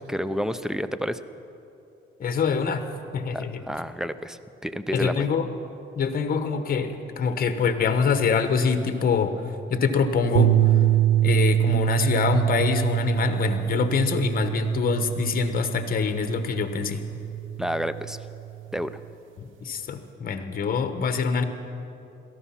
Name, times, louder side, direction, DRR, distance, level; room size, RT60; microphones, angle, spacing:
voice 1, 0.1-1.2 3.3-5.3 17.6-18.2 18.7-19.0, equal, 5° right, 13 dB, 0.6 m, -30 dB
voice 2, 2.2-2.8 3.1-3.5 4.9-5.5 6.0-9.3 9.7-10.5 11.2-17.0 19.6-21.4, left 5 dB, 50° left, 9 dB, 1.2 m, -24 dB
sound 1, 10.3-18.7, right 13 dB, 80° right, 0.6 m, -25 dB
17.5 x 13.5 x 5.8 m, 2.8 s
cardioid pair, 90°, 20 cm